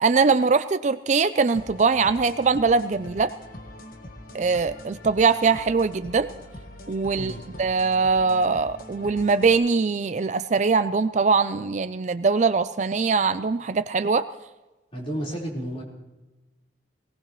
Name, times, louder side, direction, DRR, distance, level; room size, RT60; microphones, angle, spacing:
voice 1, 0.0-3.3 4.3-6.3 6.9-7.3 7.6-14.2, right 4 dB, 40° right, 12 dB, 0.4 m, -22 dB
sound 1, 1.5-9.5, left 1 dB, 50° left, 1.5 m, -43 dB
voice 2, 7.1-7.4 14.9-15.8, right 1 dB, 30° left, -3 dB, 4.4 m, -31 dB
22.0 x 18.0 x 3.1 m, 1.1 s
head